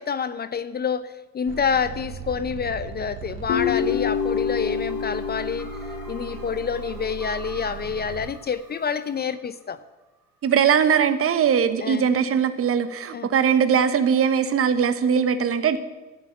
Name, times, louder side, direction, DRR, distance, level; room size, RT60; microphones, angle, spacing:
voice 1, 0.0-5.7 6.1-9.8 11.8-12.0 13.1-13.3, left 6 dB, 30° left, 14 dB, 0.7 m, -28 dB
sound 1, 1.5-8.3, right 7 dB, 65° right, 1.7 m, -38 dB
Guitar, 3.5-6.8, left 7 dB, 55° left, 1.4 m, -27 dB
sound 2, 4.0-9.8, right 1 dB, ahead, 3.1 m, -45 dB
voice 2, 10.4-15.8, right 7 dB, 40° right, 10 dB, 1.3 m, -20 dB
14.5 x 7.1 x 9.9 m, 1.1 s
figure-of-eight pair, 60°, 34 cm